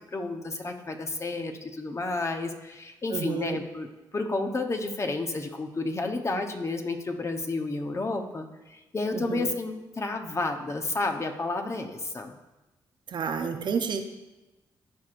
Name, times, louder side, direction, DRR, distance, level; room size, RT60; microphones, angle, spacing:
voice 1, 0.1-3.9 4.1-12.3, left 2 dB, 35° left, 4 dB, 0.9 m, -31 dB
voice 2, 3.1-3.6 9.1-9.5 13.1-14.1, right 6 dB, 60° right, 6 dB, 0.7 m, -30 dB
13.0 x 4.6 x 2.5 m, 1.0 s
cardioid pair, 65°, 9 cm